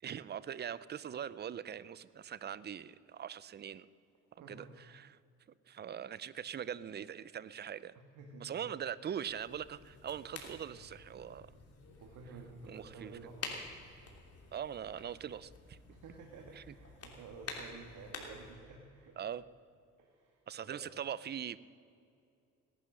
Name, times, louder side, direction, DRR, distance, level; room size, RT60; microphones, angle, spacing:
voice 1, 0.0-3.9 4.5-5.2 5.7-7.9 8.4-11.5 12.7-13.1 14.5-15.8 16.6-16.7 19.2-19.4 20.5-21.6, right 9 dB, 35° right, 18 dB, 0.5 m, -42 dB
voice 2, 4.4-4.7 7.9-8.6 10.5-10.8 11.2-11.4 12.0-13.6 15.9-19.2 20.0-20.8, right 4 dB, 80° right, 2 dB, 1.8 m, -52 dB
sound 1, 9.2-18.5, left 4 dB, 50° left, 3.0 m, -49 dB
18.0 x 11.5 x 6.4 m, 2.5 s
cardioid pair, 90°, 30 cm